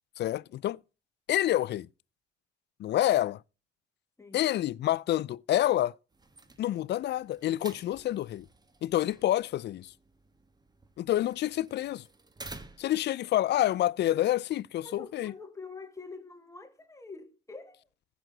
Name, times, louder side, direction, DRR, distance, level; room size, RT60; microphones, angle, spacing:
voice 1, 0.2-0.8 1.3-1.9 2.8-3.4 4.3-5.9 6.6-8.5 8.8-9.9 11.0-12.0 12.8-15.3, left 13 dB, 60° left, 0.4 m, -28 dB
sound 1, 6.1-13.1, right 2 dB, 20° right, 1.4 m, -51 dB
voice 2, 14.8-17.9, left 4 dB, 15° left, 2.0 m, -46 dB
15.0 x 6.1 x 3.9 m
cardioid pair, 90°, 20 cm